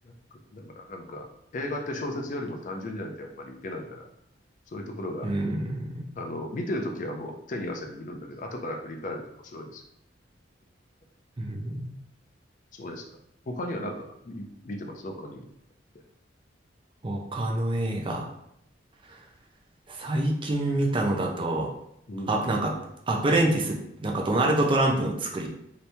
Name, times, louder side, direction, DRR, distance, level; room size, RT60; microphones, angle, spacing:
voice 1, 0.5-1.3 1.5-4.0 4.7-5.3 6.2-9.8 12.7-13.0 13.5-15.5 22.1-22.4, left 1 dB, 45° left, 3 dB, 0.4 m, -35 dB
voice 2, 5.2-6.0 11.4-11.9 17.0-18.3 19.9-21.7 22.3-22.7 23.1-25.5, right 1 dB, 30° right, 0 dB, 0.5 m, -26 dB
2.9 x 2.7 x 3.3 m, 0.76 s
head